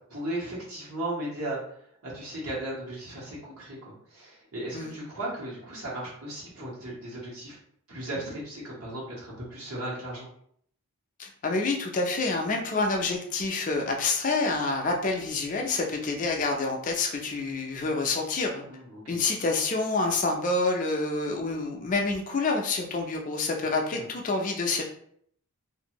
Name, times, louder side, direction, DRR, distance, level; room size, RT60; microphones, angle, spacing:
voice 1, 0.1-7.6 7.9-10.3 18.7-19.2 23.9-24.1, right 1 dB, 70° right, -5 dB, 1.2 m, -36 dB
voice 2, 11.2-18.6 19.1-24.8, left 3 dB, 35° left, 2 dB, 0.4 m, -27 dB
2.5 x 2.5 x 2.9 m, 0.66 s
head